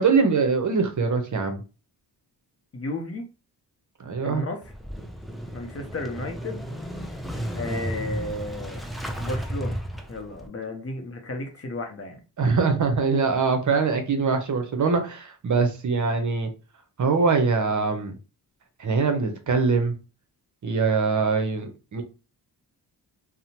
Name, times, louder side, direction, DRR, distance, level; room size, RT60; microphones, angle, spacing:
voice 1, 0.0-1.6 4.0-4.4 12.4-16.5 17.0-18.1 18.8-19.9 20.6-22.0, right 4 dB, 45° right, 0.7 m, -23 dB
voice 2, 2.7-3.3 4.2-4.6 5.5-6.6 7.5-8.8 9.2-9.8 10.1-12.2, left 2 dB, 35° left, 0.7 m, -33 dB
Motorcycle / Engine starting, 4.6-10.5, equal, ahead, 0.4 m, -33 dB
2.7 x 2.1 x 2.8 m
cardioid pair, 70°, 40 cm